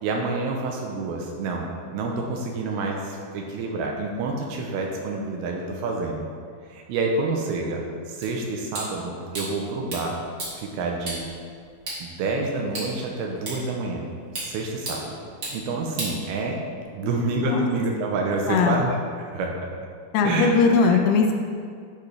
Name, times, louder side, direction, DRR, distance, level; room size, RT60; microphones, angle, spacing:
voice 1, 0.0-6.2 6.7-10.2 10.6-11.2 12.0-14.1 14.4-15.2 15.5-19.7 20.2-20.9, right 3 dB, 80° right, 1 dB, 2.4 m, -28 dB
sound 1, 8.2-16.8, right 1 dB, 40° right, 2.3 m, -37 dB
voice 2, 18.5-18.8 20.1-21.3, left 5 dB, 80° left, 3 dB, 2.5 m, -20 dB
10.5 x 5.1 x 3.3 m, 2.2 s
omnidirectional pair, 4.7 m